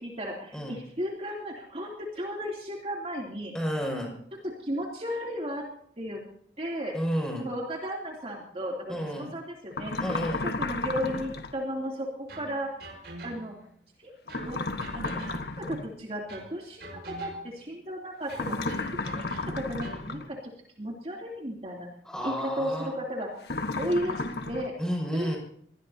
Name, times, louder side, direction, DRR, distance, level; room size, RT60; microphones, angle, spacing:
voice 1, 0.0-3.5 4.4-5.7 6.0-6.2 6.6-7.0 7.4-10.2 10.4-12.8 13.2-13.6 14.0-14.1 14.4-14.6 14.9-15.3 15.6-18.8 19.1-20.4 20.8-21.9 22.2-23.3 23.8-24.7 25.1-25.3, equal, 35° right, -2 dB, 3.1 m, -34 dB
voice 2, 3.5-4.1 6.9-7.5 8.9-9.3 10.0-10.4 22.0-22.9 24.8-25.4, equal, 5° left, -1 dB, 6.4 m, -31 dB
sound 1, 9.7-11.5 14.3-15.9 18.3-20.3 23.4-24.7, left 3 dB, 65° left, 1.4 m, -33 dB
sound 2, 12.3-13.7 14.3-15.8 16.3-17.6 18.3-20.1, right 2 dB, 70° right, 5.1 m, -45 dB
24.0 x 19.5 x 2.9 m, 0.66 s
head